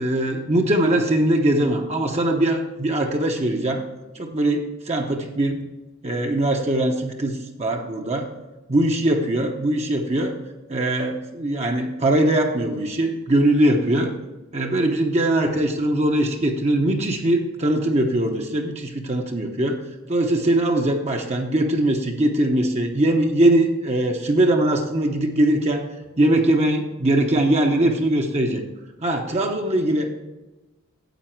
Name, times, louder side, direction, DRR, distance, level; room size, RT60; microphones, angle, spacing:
voice 1, 0.0-3.8 4.1-5.6 6.0-8.3 8.7-10.3 10.7-14.1 14.5-19.8 20.1-25.9 26.2-28.6 29.0-30.1, right 1 dB, 30° right, 2 dB, 0.8 m, -21 dB
9.1 x 8.1 x 4.5 m, 1.1 s
head